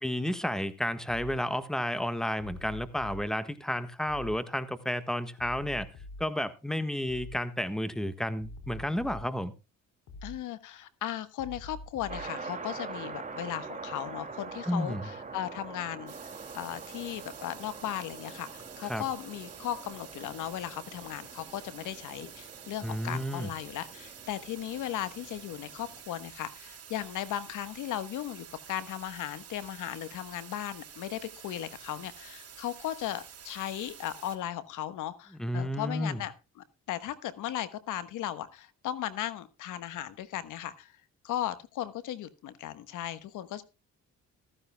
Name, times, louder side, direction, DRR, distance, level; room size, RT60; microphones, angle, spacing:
voice 1, 0.0-5.9 6.2-9.5 14.7-15.0 18.9-19.0 22.8-23.5 35.4-36.2, equal, ahead, 1.4 m, -31 dB
sound 1, 1.1-1.4 2.4-3.2 4.1-4.4 5.4-6.3 7.1-7.4 8.4-9.3 10.1-10.4 11.4-12.3, left 2 dB, 65° left, 4.5 m, -45 dB
voice 2, 10.2-43.6, left 12 dB, 85° left, 1.3 m, -37 dB
sound 2, 12.1-26.0, right 4 dB, 25° right, 2.4 m, -44 dB
sound 3, 16.1-34.4, right 8 dB, 55° right, 4.2 m, -49 dB
14.5 x 14.5 x 2.3 m
cardioid pair, 90°, 30 cm